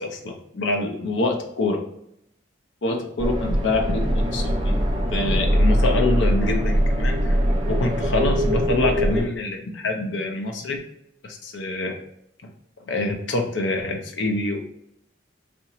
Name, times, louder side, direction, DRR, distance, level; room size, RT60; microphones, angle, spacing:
voice 1, 0.0-1.8 2.8-4.7 5.1-7.4 7.7-10.8 11.2-11.9 12.9-14.6, left 2 dB, 70° left, 2 dB, 0.6 m, -26 dB
sound 1, 3.2-9.2, equal, 25° right, 0.7 m, -21 dB
4.2 x 2.9 x 2.9 m, 0.74 s
head